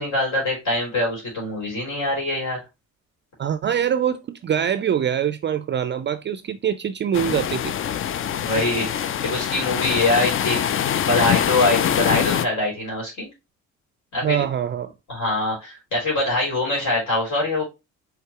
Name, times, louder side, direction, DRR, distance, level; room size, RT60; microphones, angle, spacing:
voice 1, 0.0-2.6 8.4-13.3 14.1-14.4 15.1-17.6, left 2 dB, 70° left, 3.0 m, -24 dB
voice 2, 3.4-7.7 14.2-14.9, right 9 dB, 40° right, 0.4 m, -24 dB
sound 1, 7.1-12.5, left 9 dB, 45° left, 0.4 m, -24 dB
4.6 x 3.5 x 2.9 m
cardioid pair, 90°, 30 cm